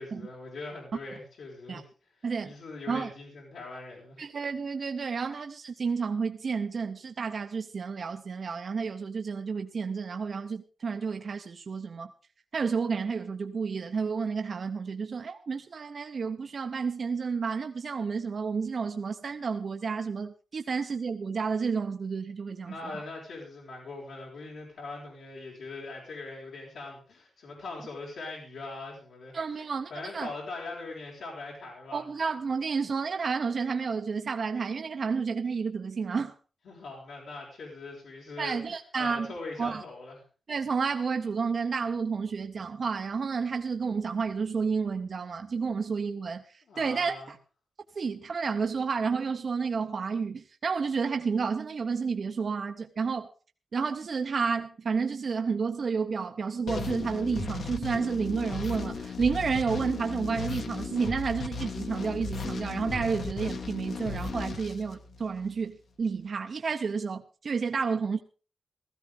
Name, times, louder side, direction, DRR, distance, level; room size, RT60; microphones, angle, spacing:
voice 1, 0.0-1.8 2.4-4.2 22.6-29.4 29.9-32.0 36.6-38.6 39.0-40.2 46.7-47.3, left 3 dB, 80° left, 5.1 m, -41 dB
voice 2, 2.2-2.5 2.9-3.1 4.2-12.1 12.5-23.0 29.3-30.3 31.9-36.3 38.4-39.3 39.6-39.8 40.5-47.4 48.0-53.3 53.7-68.2, right 5 dB, 45° right, 0.7 m, -31 dB
sound 1, 56.7-65.5, left 4 dB, 60° left, 1.2 m, -36 dB
16.5 x 14.5 x 3.7 m
wide cardioid pair, 175°, 0 cm